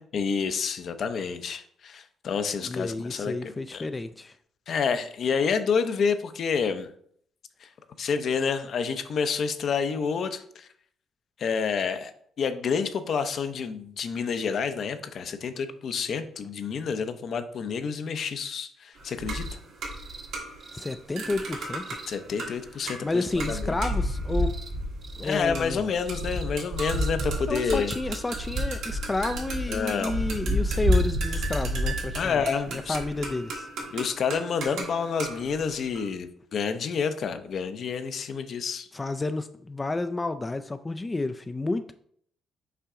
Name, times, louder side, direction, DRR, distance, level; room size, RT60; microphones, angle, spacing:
voice 1, 0.1-3.3 3.7-3.9 4.7-6.9 7.6-7.7 8.0-10.7 11.4-12.1 12.4-19.4 22.1-23.8 25.2-27.9 29.7-30.1 32.1-33.0 33.9-38.9, left 6 dB, 60° left, 9 dB, 0.6 m, -29 dB
voice 2, 2.6-4.3 20.7-21.8 23.0-24.5 25.2-25.9 27.5-32.4 32.7-33.7 38.9-41.9, left 2 dB, 20° left, 9 dB, 0.3 m, -30 dB
sound 1, 19.0-20.8 21.2-36.1, equal, 80° right, 1.7 m, -31 dB
sound 2, 19.3-19.6 19.9-20.3 20.6-21.0 21.7-22.2 23.1-23.6 24.3-24.7 25.0-25.4 26.0-26.5 26.8-27.1 27.6-28.0 28.3-28.7 29.1-29.4 30.7-31.2 31.5-31.6 32.7-32.8, right 4 dB, 40° right, 0.9 m, -46 dB
5.7 x 4.7 x 3.7 m, 0.64 s
cardioid pair, 90°, 0 cm